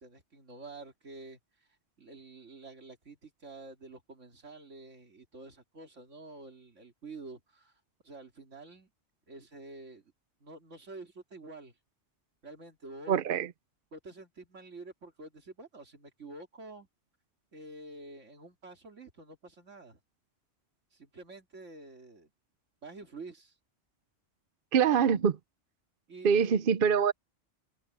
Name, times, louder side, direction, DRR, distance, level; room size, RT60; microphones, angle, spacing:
voice 1, 0.0-1.4 2.0-8.9 9.3-10.1 10.4-11.7 12.4-13.2 13.9-16.9 17.5-20.0 20.9-22.3 22.8-23.5 24.8-25.1 26.1-26.8, right 3 dB, 80° right, 3.1 m, -48 dB
voice 2, 13.1-13.5 24.7-25.3 26.2-27.1, right 7 dB, 55° right, 0.8 m, -24 dB
omnidirectional pair, 1.3 m